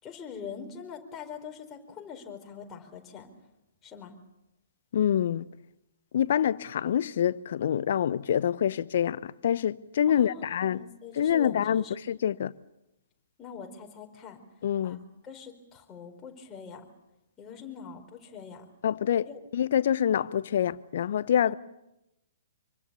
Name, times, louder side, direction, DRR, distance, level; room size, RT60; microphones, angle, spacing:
voice 1, 0.0-3.3 3.8-4.1 10.1-11.9 13.4-14.4 14.8-15.0 15.2-16.8 17.4-18.6 19.3-19.4 21.4-21.5, left 6 dB, 20° left, 4.6 m, -43 dB
voice 2, 4.9-5.4 6.1-10.8 11.1-12.5 14.6-15.0 18.8-21.5, left 9 dB, 55° left, 0.9 m, -26 dB
26.0 x 25.0 x 7.0 m
figure-of-eight pair, 120°, 0 cm